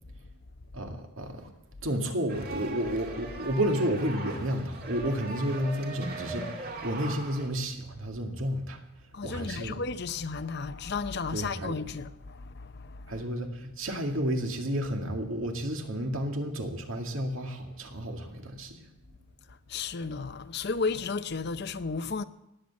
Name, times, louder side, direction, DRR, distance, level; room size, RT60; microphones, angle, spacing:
voice 1, 0.7-1.5 1.8-8.8 9.2-9.8 11.3-11.8 13.1-18.9, equal, 75° right, 2.2 m, -31 dB
sound 1, 2.3-7.5, right 2 dB, 45° right, 2.1 m, -40 dB
voice 2, 9.1-13.2 19.5-22.2, left 4 dB, 50° left, 0.6 m, -34 dB
19.0 x 7.9 x 8.4 m
head